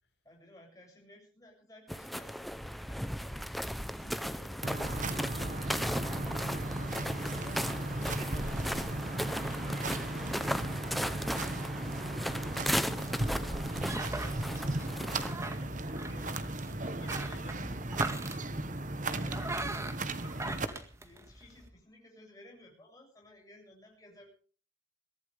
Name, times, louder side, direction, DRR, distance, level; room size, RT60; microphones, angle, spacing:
voice 1, 0.2-4.8 6.8-7.6 8.1-13.2 14.1-16.5 16.8-17.0 19.1-24.3, left 1 dB, 20° left, 0 dB, 7.6 m, -57 dB
sound 1, 1.9-15.3, equal, ahead, 0.8 m, -36 dB
voice 2, 3.8-5.0 16.0-16.4 16.7-18.3, left 2 dB, 65° left, 3 dB, 4.8 m, -56 dB
sound 2, 4.6-20.7, right 2 dB, 45° right, 1.5 m, -36 dB
sound 3, 13.1-21.7, right 2 dB, 15° right, 1.8 m, -42 dB
23.0 x 16.0 x 3.6 m, 0.40 s
head